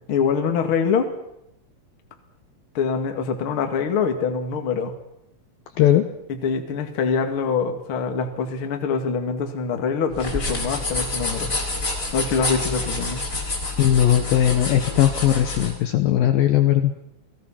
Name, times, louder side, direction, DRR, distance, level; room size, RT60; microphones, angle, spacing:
voice 1, 0.1-1.1 2.7-5.0 6.3-11.5 12.1-13.2, left 5 dB, 45° left, 5 dB, 1.8 m, -24 dB
voice 2, 5.8-6.1 13.8-16.9, left 11 dB, 90° left, 7 dB, 2.0 m, -18 dB
sound 1, 10.1-15.7, left 2 dB, 15° left, 3.8 m, -28 dB
28.5 x 19.5 x 5.8 m, 0.81 s
omnidirectional pair, 5.8 m